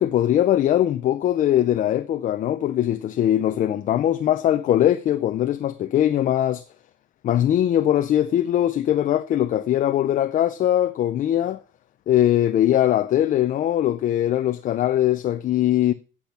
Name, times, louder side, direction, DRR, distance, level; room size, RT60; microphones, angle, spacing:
voice 1, 0.0-6.6 7.2-11.6 12.1-15.9, left 11 dB, 40° left, 0.5 m, -21 dB
8.6 x 8.0 x 5.8 m
cardioid pair, 175°, 20 cm